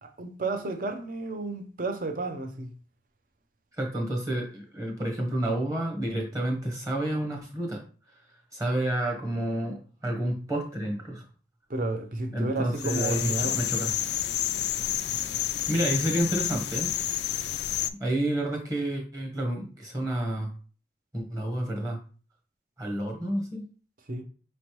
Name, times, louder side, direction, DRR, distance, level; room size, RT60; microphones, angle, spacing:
voice 1, 0.0-2.7 11.7-13.6 24.1-24.2, right 2 dB, 45° right, 0.6 m, -32 dB
voice 2, 3.8-7.8 8.5-11.2 12.3-13.9 15.7-16.9 18.0-20.5 21.1-22.0 22.8-23.6, right 1 dB, 20° right, 1.0 m, -29 dB
sound 1, 12.8-17.9, left 11 dB, 60° left, 0.3 m, -29 dB
5.1 x 3.2 x 3.0 m
head